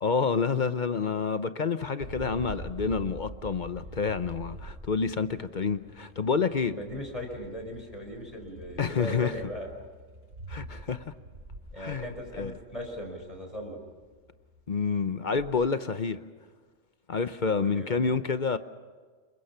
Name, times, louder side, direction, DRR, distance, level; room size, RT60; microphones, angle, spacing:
voice 1, 0.0-6.8 8.8-9.4 10.5-11.1 11.8-12.1 12.3-12.5 14.7-16.2 17.1-18.6, left 5 dB, 45° left, 0.8 m, -28 dB
sound 1, 2.0-15.5, right 1 dB, 85° right, 4.5 m, -46 dB
voice 2, 6.6-9.7 11.7-13.8 17.6-18.0, equal, 30° left, 4.7 m, -38 dB
28.0 x 23.0 x 5.7 m
omnidirectional pair, 1.3 m